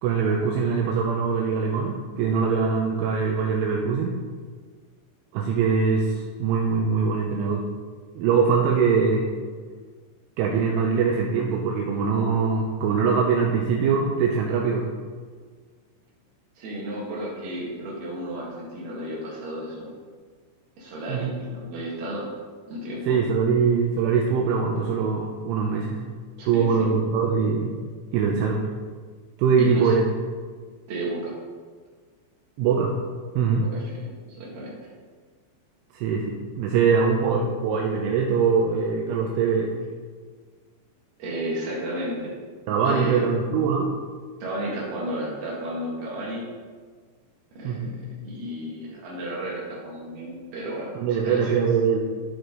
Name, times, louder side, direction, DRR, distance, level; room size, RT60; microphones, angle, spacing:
voice 1, 0.0-4.2 5.3-7.7 8.2-9.3 10.4-14.9 21.1-21.3 23.1-26.0 26.5-27.7 28.1-28.7 29.4-30.0 32.6-32.9 33.4-33.6 35.9-39.7 42.7-43.9 47.6-47.9 51.0-52.0, right 5 dB, 80° right, -1 dB, 3.0 m, -22 dB
voice 2, 16.6-19.9 20.8-22.3 22.7-23.2 26.4-26.9 29.6-30.0 30.9-31.3 33.6-34.0 34.4-34.7 41.2-42.3 42.8-43.3 44.4-46.5 47.5-51.6, right 1 dB, 60° right, -4 dB, 3.3 m, -33 dB
12.5 x 5.0 x 3.9 m, 1.5 s
omnidirectional pair, 6.0 m